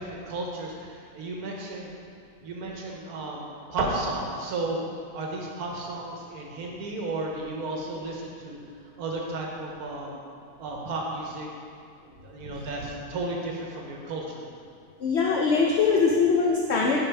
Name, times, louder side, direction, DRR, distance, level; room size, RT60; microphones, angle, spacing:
voice 1, 0.0-1.9 2.4-4.8 5.1-8.6 9.0-10.1 10.6-11.5 12.0-14.4, right 2 dB, 90° right, -1 dB, 1.4 m, -33 dB
voice 2, 15.0-17.0, left 5 dB, 60° left, -2 dB, 0.8 m, -22 dB
9.8 x 4.2 x 3.3 m, 2.3 s
omnidirectional pair, 1.6 m